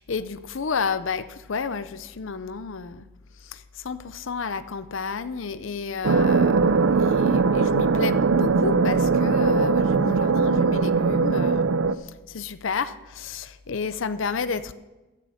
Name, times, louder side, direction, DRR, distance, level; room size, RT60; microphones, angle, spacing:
voice 1, 0.0-3.0 3.5-3.6 3.8-11.7 12.3-14.7, left 5 dB, 65° left, 13 dB, 0.6 m, -31 dB
sound 1, 6.0-12.0, right 4 dB, 70° right, 0.5 m, -20 dB
14.0 x 7.8 x 6.3 m, 1.1 s
head